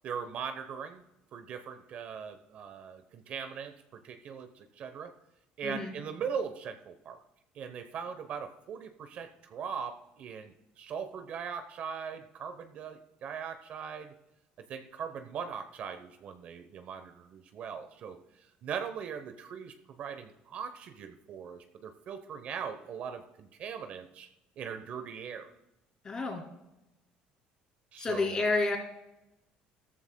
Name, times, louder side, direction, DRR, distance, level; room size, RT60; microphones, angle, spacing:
voice 1, 0.0-1.0 1.3-5.1 5.6-7.2 7.5-14.1 14.6-18.2 18.6-24.3 24.6-25.5 27.9-28.4, right 7 dB, 45° right, 8 dB, 0.9 m, -40 dB
voice 2, 5.6-5.9 26.0-26.4 28.0-28.8, left 3 dB, 25° left, 2 dB, 2.7 m, -29 dB
16.5 x 14.0 x 2.3 m, 0.94 s
cardioid pair, 150°, 3 cm